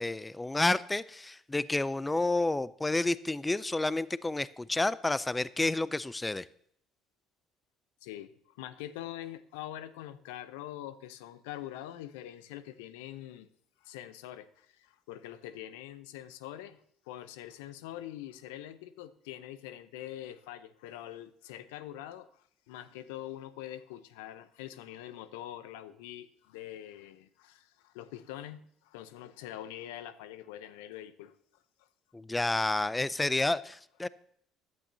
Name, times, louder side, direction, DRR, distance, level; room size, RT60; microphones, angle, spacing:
voice 1, 0.0-6.5 32.1-34.1, left 2 dB, 15° left, 18 dB, 0.4 m, -30 dB
voice 2, 8.0-13.5 13.8-31.4 31.8-31.9, left 12 dB, 85° left, 14 dB, 0.7 m, -44 dB
15.0 x 10.5 x 2.7 m, 0.67 s
supercardioid pair, 85°, 0 cm